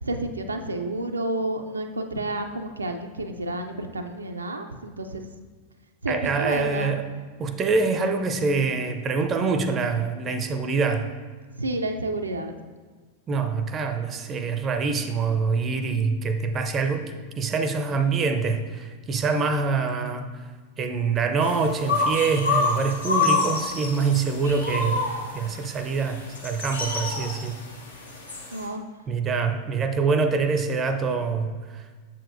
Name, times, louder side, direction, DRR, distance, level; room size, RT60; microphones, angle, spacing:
voice 1, 0.0-5.2 6.0-6.9 11.6-12.5 28.5-28.8, right 2 dB, 80° right, 4 dB, 0.4 m, -30 dB
voice 2, 6.1-7.0 7.4-11.1 13.3-20.3 20.8-25.0 25.3-27.6 29.1-31.8, right 4 dB, 25° right, 8 dB, 0.5 m, -25 dB
sound 1, 21.4-28.7, left 3 dB, 70° left, 1.0 m, -27 dB
7.3 x 6.7 x 2.6 m, 1.5 s
figure-of-eight pair, 90°, 0 cm